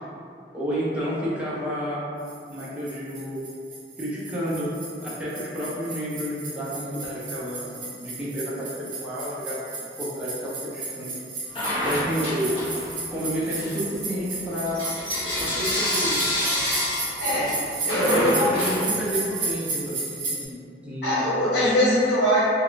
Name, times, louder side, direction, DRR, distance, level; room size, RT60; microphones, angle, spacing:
voice 1, 0.5-2.0 2.5-3.5 4.0-4.7 5.0-11.2 11.8-12.6 13.1-14.8 15.4-16.7 18.0-21.2, equal, 5° right, -9 dB, 0.5 m, -30 dB
sound 1, 2.3-20.4, right 3 dB, 45° right, 0.6 m, -34 dB
Bell / Coin (dropping), 11.5-13.1 13.4-19.4, left 1 dB, 30° left, 0.8 m, -28 dB
voice 2, 17.8-18.5 21.0-22.4, equal, 85° left, -9 dB, 1.3 m, -21 dB
2.4 x 2.2 x 3.8 m, 2.4 s
head